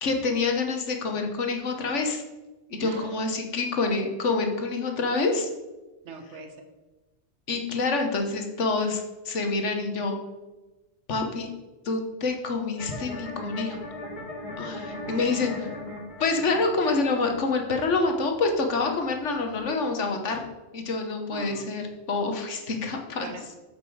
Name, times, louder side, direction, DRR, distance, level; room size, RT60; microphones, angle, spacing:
voice 1, 0.0-2.2 2.7-5.5 7.5-10.1 11.1-11.5 11.8-13.8 14.6-15.7 16.2-20.4 20.7-23.3, left 3 dB, 90° left, 4 dB, 1.5 m, -27 dB
voice 2, 2.8-3.2 6.0-6.6 15.1-15.8 21.3-21.7 23.2-23.6, right 3 dB, 75° right, 5 dB, 1.4 m, -41 dB
sound 1, 12.8-19.7, left 1 dB, 40° left, 2.5 m, -39 dB
7.4 x 7.0 x 4.8 m, 1.1 s
omnidirectional pair, 1.2 m